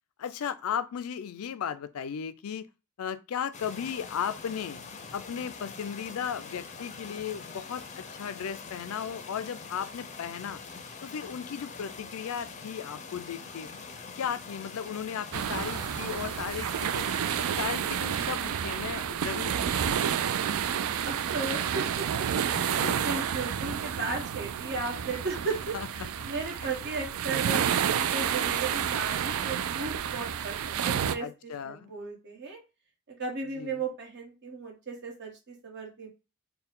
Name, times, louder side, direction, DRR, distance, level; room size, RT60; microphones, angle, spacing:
voice 1, 0.2-2.7 3.0-4.8 5.1-10.6 11.0-13.7 14.1-17.1 17.6-20.2 22.6-23.1 25.7-25.9 26.6-26.7 31.2-31.9 33.6-33.8, left 8 dB, 90° left, 0.4 m, -36 dB
sound 1, 3.5-17.6, left 5 dB, 35° left, 0.5 m, -44 dB
sound 2, 15.3-31.1, right 8 dB, 80° right, 0.4 m, -30 dB
voice 2, 21.0-32.6 33.1-36.1, right 3 dB, 55° right, 1.4 m, -36 dB
4.4 x 2.2 x 3.6 m
head